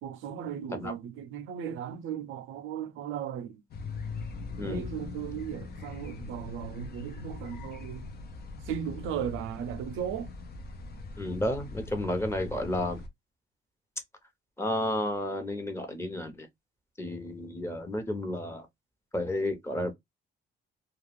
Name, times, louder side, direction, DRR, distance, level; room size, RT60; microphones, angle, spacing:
voice 1, 0.0-3.6 4.6-8.1 8.6-10.3, right 9 dB, 90° right, 0.5 m, -36 dB
sound 1, 3.7-13.1, left 3 dB, 50° left, 0.6 m, -41 dB
voice 2, 4.6-4.9 11.2-13.0 14.6-16.5 17.0-18.7 19.1-19.9, left 1 dB, 15° left, 0.9 m, -32 dB
2.4 x 2.3 x 3.2 m
cardioid pair, 90°, 20 cm